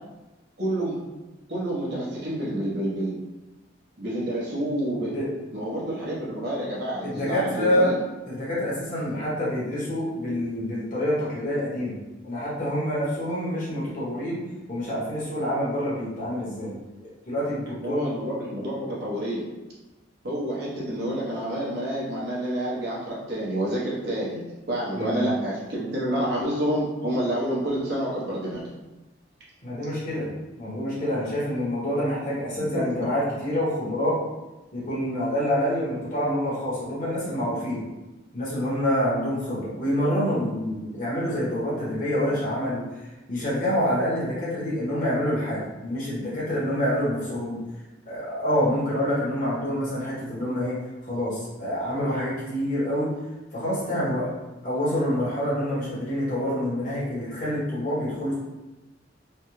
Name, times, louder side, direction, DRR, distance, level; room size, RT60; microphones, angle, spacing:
voice 1, 0.6-1.0 1.5-3.2 4.0-5.1 5.5-8.0 17.8-19.4 20.2-24.4 24.7-28.6 32.6-33.1, right 1 dB, 60° right, -6 dB, 0.9 m, -28 dB
voice 2, 5.0-5.3 7.0-7.9 8.3-12.0 12.2-14.4 14.7-16.7 17.0-18.2 24.9-25.3 29.6-34.2 34.7-37.8 38.3-47.6 48.0-50.7 51.0-53.1 53.5-54.3 54.6-58.3, equal, 45° left, -8 dB, 1.3 m, -27 dB
3.3 x 2.3 x 3.1 m, 1.1 s
head